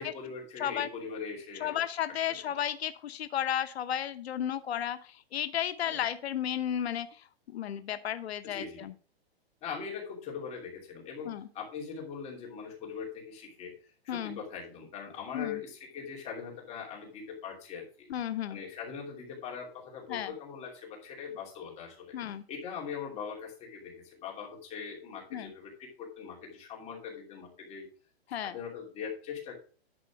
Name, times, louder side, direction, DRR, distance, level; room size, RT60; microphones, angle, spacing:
voice 1, 0.0-1.8 5.8-6.0 8.4-8.9 9.6-13.7 14.0-18.1 18.5-22.2 22.5-27.9 28.3-29.6, left 6 dB, 20° left, -1 dB, 2.7 m, -41 dB
voice 2, 0.6-0.9 1.6-7.3 7.5-8.9 11.2-11.5 14.1-14.4 15.3-15.6 18.1-18.6 20.1-20.3 22.1-22.4 25.3-25.5 28.3-28.6, left 10 dB, 85° left, 11 dB, 0.8 m, -33 dB
11.0 x 4.2 x 5.9 m, 0.40 s
hypercardioid pair, 160°, 31 cm